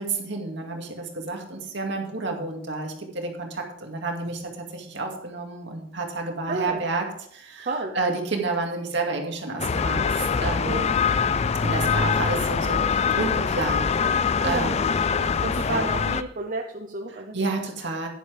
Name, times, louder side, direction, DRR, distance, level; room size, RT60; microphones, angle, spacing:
voice 1, 0.0-10.9 11.6-14.2 14.4-15.9 17.1-18.1, right 3 dB, 65° right, 2 dB, 2.3 m, -30 dB
voice 2, 6.5-6.8 7.6-7.9 8.3-8.5 10.6-10.9 14.4-14.7 15.4-17.3, right 3 dB, 45° right, 3 dB, 0.8 m, -31 dB
sound 1, 9.6-16.2, left 6 dB, 35° left, 0.4 m, -24 dB
11.0 x 10.5 x 3.5 m, 0.66 s
head